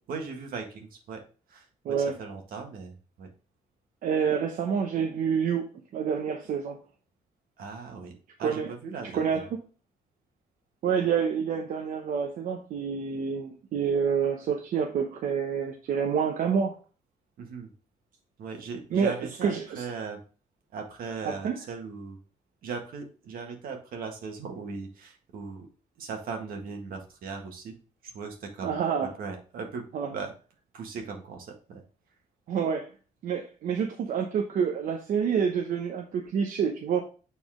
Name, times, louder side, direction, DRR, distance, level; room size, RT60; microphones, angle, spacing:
voice 1, 0.1-1.2 1.5-3.3 7.6-8.1 8.4-9.5 17.4-17.7 18.4-20.2 20.7-22.2 22.6-25.7 26.0-27.7 28.0-30.3 30.7-31.8, right 5 dB, 85° right, 3 dB, 1.7 m, -38 dB
voice 2, 1.8-2.2 4.0-6.8 8.4-8.7 9.1-9.4 10.8-16.7 18.9-19.8 21.2-21.6 28.6-29.1 29.9-30.1 32.5-32.9 33.2-37.0, right 7 dB, 65° right, 3 dB, 0.9 m, -28 dB
7.2 x 4.2 x 3.6 m, 0.36 s
cardioid pair, 155°, 15 cm